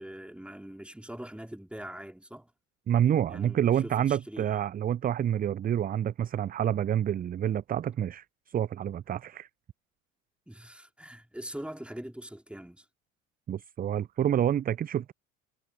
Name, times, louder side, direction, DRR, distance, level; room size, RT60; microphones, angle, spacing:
voice 1, 0.0-2.5 3.3-4.5 10.5-12.9, right 1 dB, 5° right, 4.0 m, -42 dB
voice 2, 2.9-9.5 13.5-15.1, right 10 dB, 25° right, 0.5 m, -28 dB
figure-of-eight pair, 60°, 40 cm